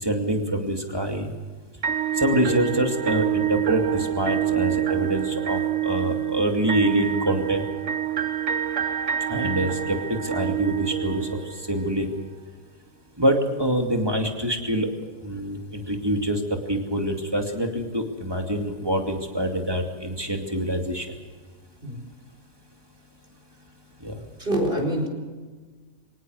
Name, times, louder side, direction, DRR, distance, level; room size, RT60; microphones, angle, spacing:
voice 1, 0.0-1.3 2.2-7.6 9.3-11.4 11.7-12.1 13.2-14.9 15.2-16.4 16.7-21.1 24.0-24.2, equal, 15° right, 3 dB, 2.6 m, -25 dB
sound 1, 1.8-11.9, right 10 dB, 60° right, 1.4 m, -27 dB
voice 2, 24.4-25.1, right 1 dB, 40° right, 1 dB, 4.8 m, -25 dB
24.5 x 19.0 x 6.5 m, 1.4 s
omnidirectional pair, 1.5 m